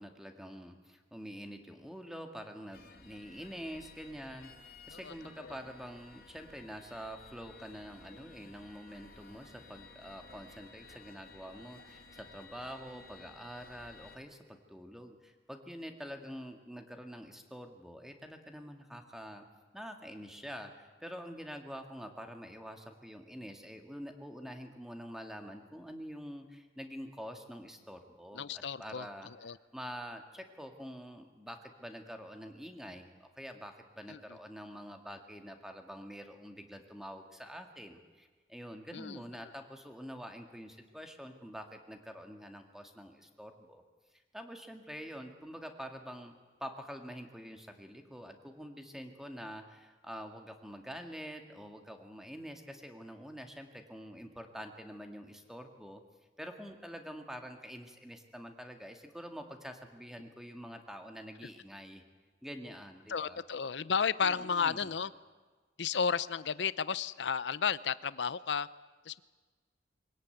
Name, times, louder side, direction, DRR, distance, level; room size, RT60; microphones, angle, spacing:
voice 1, 0.0-19.5 19.7-43.8 44.3-56.0 56.4-62.0 62.4-63.4 64.2-64.9, equal, 5° right, 5 dB, 2.0 m, -46 dB
sound 1, 2.7-14.2, left 3 dB, 55° left, 1.9 m, -55 dB
voice 2, 28.3-29.1 29.4-29.6 34.1-34.2 38.9-39.2 63.1-65.1 65.8-68.7 69.1-69.2, left 6 dB, 80° left, 17 dB, 0.7 m, -33 dB
24.0 x 17.5 x 9.2 m, 1.4 s
head